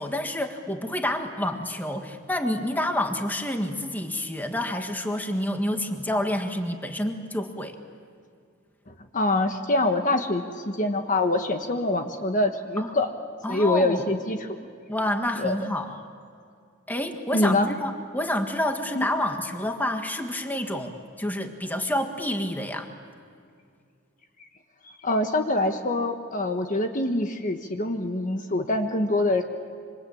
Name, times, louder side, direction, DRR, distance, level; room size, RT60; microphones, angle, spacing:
voice 1, 0.0-7.8 12.8-12.9 13.4-14.0 14.9-15.9 16.9-22.9, left 1 dB, 10° left, 4 dB, 1.7 m, -28 dB
voice 2, 8.9-13.1 13.5-14.6 15.4-15.6 17.3-17.7 18.9-19.1 24.8-29.4, left 2 dB, 40° left, 5 dB, 1.4 m, -25 dB
26.5 x 26.0 x 8.7 m, 2.3 s
head